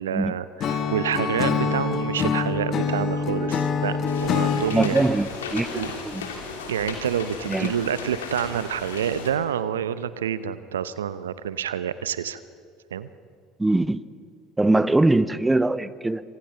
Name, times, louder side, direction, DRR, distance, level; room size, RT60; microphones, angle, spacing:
voice 1, 0.0-5.0 5.7-5.9 6.7-12.4 12.9-13.1, right 9 dB, 80° right, 15 dB, 0.7 m, -28 dB
Acoustic guitar / Strum, 0.6-4.7, left 5 dB, 45° left, 1.9 m, -25 dB
sound 1, 4.1-9.3, left 5 dB, 75° left, 3.3 m, -35 dB
voice 2, 4.7-5.7 6.0-6.2 7.5-7.7 13.6-14.0 14.6-16.2, right 2 dB, 10° right, 16 dB, 0.8 m, -22 dB
27.5 x 25.0 x 5.8 m, 2.3 s
figure-of-eight pair, 65°, 0 cm